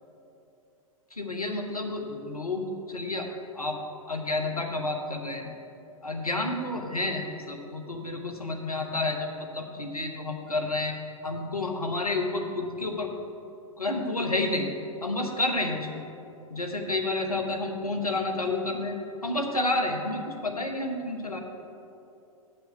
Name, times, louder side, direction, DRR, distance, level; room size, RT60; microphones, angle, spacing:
voice 1, 1.1-3.8 4.1-5.5 6.0-11.0 11.2-13.1 13.8-14.7 15.0-16.0 16.5-19.0 19.2-21.4, left 2 dB, 85° left, 3 dB, 1.0 m, -30 dB
7.6 x 5.5 x 6.9 m, 2.7 s
figure-of-eight pair, 105°, 18 cm